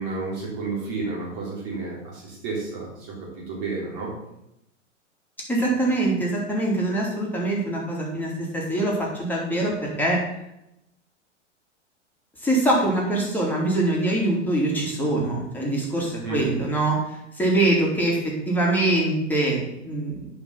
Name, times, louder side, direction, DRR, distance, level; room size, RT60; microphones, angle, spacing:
voice 1, 0.0-3.1 3.5-4.1 16.2-16.4, right 3 dB, 40° right, -4 dB, 4.1 m, -31 dB
voice 2, 5.5-10.2 12.4-20.3, right 2 dB, 5° left, -4 dB, 3.1 m, -24 dB
9.9 x 5.7 x 5.7 m, 0.84 s
figure-of-eight pair, 105°, 37 cm